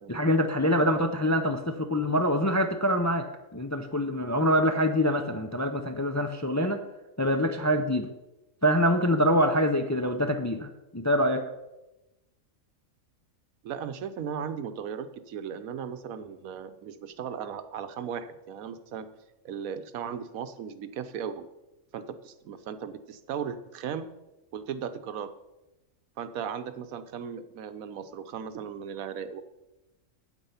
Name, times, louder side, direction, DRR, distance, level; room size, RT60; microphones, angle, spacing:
voice 1, 0.1-6.8 7.2-8.1 8.6-11.4, equal, 25° left, 6 dB, 0.4 m, -25 dB
voice 2, 13.6-19.1 19.4-21.5 21.9-24.1 24.5-25.3 26.2-29.4, right 7 dB, 90° right, 11 dB, 1.2 m, -37 dB
9.0 x 8.0 x 5.6 m, 0.99 s
omnidirectional pair, 1.4 m